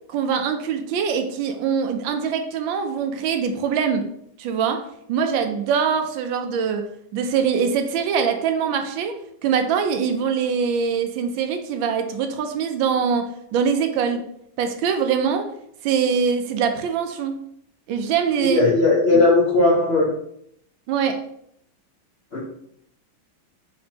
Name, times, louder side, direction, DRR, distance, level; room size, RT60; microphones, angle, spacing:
voice 1, 0.1-4.1 4.4-4.8 5.1-14.3 14.6-15.5 15.8-17.4 17.9-18.6 20.9-21.2, right 6 dB, 75° right, 6 dB, 1.3 m, -23 dB
voice 2, 18.4-20.1 22.3-22.4, left 2 dB, 55° left, -5 dB, 0.7 m, -17 dB
4.4 x 4.2 x 2.9 m, 0.71 s
omnidirectional pair, 2.2 m